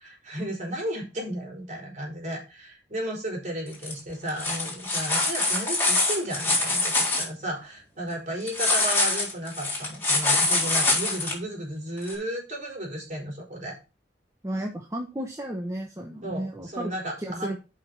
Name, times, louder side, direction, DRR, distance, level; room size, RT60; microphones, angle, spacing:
voice 1, 0.0-13.8 16.2-17.5, right 1 dB, 40° right, 0 dB, 4.9 m, -34 dB
sound 1, 3.7-3.9 4.3-7.2 8.5-11.3 12.1-12.2, left 2 dB, 10° left, 4.1 m, -24 dB
voice 2, 14.4-16.9 17.2-17.5, right 1 dB, 15° right, 2 dB, 1.1 m, -33 dB
7.6 x 5.9 x 6.2 m, 0.29 s
head